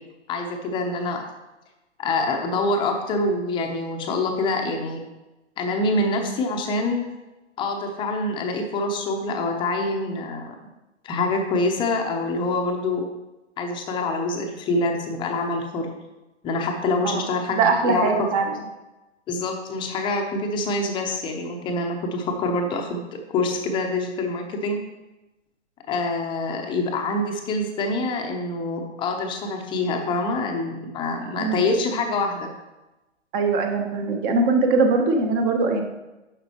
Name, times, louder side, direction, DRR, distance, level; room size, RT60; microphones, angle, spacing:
voice 1, 0.3-1.2 2.0-5.0 5.6-7.0 7.6-10.5 11.0-13.0 13.6-15.9 16.4-18.1 19.3-24.8 25.9-32.5, left 2 dB, 15° left, 3 dB, 0.8 m, -25 dB
voice 2, 17.5-18.6 31.4-31.6 33.3-35.8, right 3 dB, 20° right, 4 dB, 1.0 m, -21 dB
10.0 x 6.6 x 3.0 m, 1.0 s
figure-of-eight pair, 125°, 36 cm